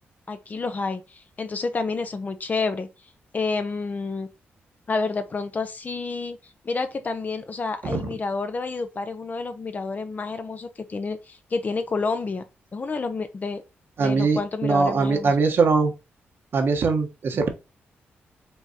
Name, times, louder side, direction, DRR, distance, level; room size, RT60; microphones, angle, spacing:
voice 1, 0.3-2.9 3.3-4.3 4.9-6.4 6.6-12.4 12.7-13.6 14.0-15.3, left 4 dB, 40° left, 0.8 m, -29 dB
voice 2, 14.0-15.9 16.5-17.5, right 4 dB, 60° right, 1.2 m, -21 dB
5.3 x 3.4 x 2.9 m
cardioid pair, 75°, 4 cm